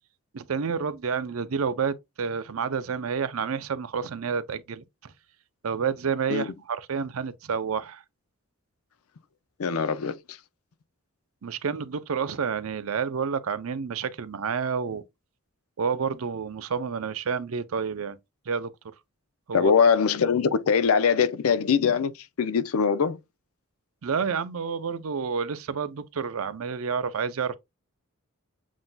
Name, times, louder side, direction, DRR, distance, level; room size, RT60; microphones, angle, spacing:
voice 1, 0.3-5.1 5.6-8.0 11.4-15.0 15.8-18.2 18.5-18.7 19.5-19.7 24.0-27.5, right 6 dB, 80° right, 0.5 m, -29 dB
voice 2, 9.6-10.4 19.5-23.2, left 6 dB, 85° left, 0.5 m, -22 dB
7.4 x 2.6 x 2.2 m
head